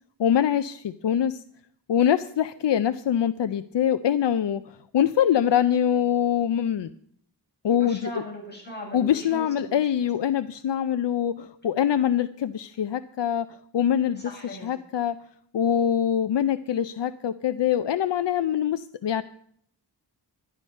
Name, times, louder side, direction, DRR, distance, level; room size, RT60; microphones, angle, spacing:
voice 1, 0.2-1.3 1.9-4.6 4.9-6.9 7.6-8.0 8.9-13.5 13.7-14.2 14.6-15.2 15.5-19.2, left 9 dB, 80° left, 11 dB, 0.5 m, -24 dB
voice 2, 7.7-10.1 14.1-14.7, equal, 25° left, -2 dB, 6.5 m, -39 dB
11.5 x 10.5 x 5.3 m, 0.65 s
wide cardioid pair, 75°, 42 cm